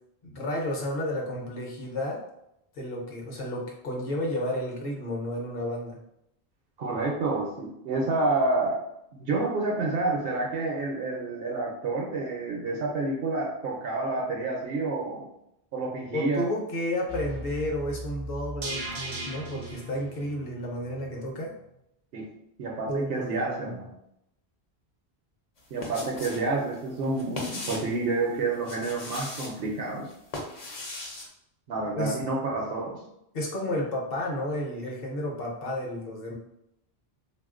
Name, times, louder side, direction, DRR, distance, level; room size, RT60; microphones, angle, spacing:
voice 1, 0.2-2.2 2.7-6.0 16.1-21.5 22.9-23.8 32.0-32.2 33.3-36.3, left 1 dB, 65° left, -1 dB, 0.9 m, -32 dB
voice 2, 6.8-8.8 9.1-15.3 15.7-16.5 22.1-22.3 22.6-23.9 25.7-30.1 31.7-33.0, right 3 dB, 65° right, -2 dB, 0.8 m, -29 dB
sound 1, 17.1-21.3 21.6-21.7, right 1 dB, 40° right, 0.5 m, -38 dB
sound 2, 25.6-26.5 26.7-28.0 28.5-29.5 30.1-31.3, left 2 dB, 45° left, 0.6 m, -38 dB
3.3 x 2.4 x 2.4 m, 0.80 s
omnidirectional pair, 1.1 m